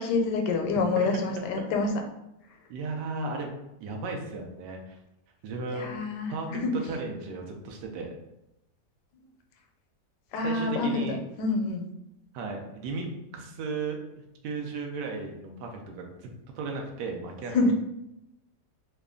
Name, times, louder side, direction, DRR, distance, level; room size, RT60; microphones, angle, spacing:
voice 1, 0.0-1.9 5.7-6.7 10.3-11.9 17.5-17.7, left 3 dB, 80° left, 4 dB, 1.2 m, -27 dB
voice 2, 2.7-3.5 3.8-5.0 5.4-6.0 6.3-6.5 6.8-8.1 10.4-11.2 12.3-13.1 13.3-14.0 14.4-16.1 16.6-17.7, right 3 dB, 90° right, 2 dB, 1.2 m, -35 dB
3.2 x 2.2 x 3.6 m, 0.87 s
omnidirectional pair, 1.8 m